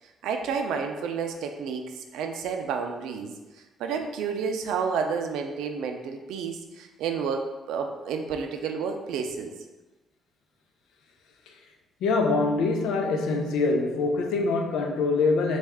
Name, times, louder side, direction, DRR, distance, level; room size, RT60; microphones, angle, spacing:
voice 1, 0.2-3.3 3.8-9.5, right 6 dB, 85° right, 5 dB, 0.4 m, -30 dB
voice 2, 12.0-15.6, left 3 dB, 90° left, 3 dB, 0.5 m, -24 dB
4.2 x 2.4 x 3.5 m, 1.1 s
cardioid pair, 90°, 0 cm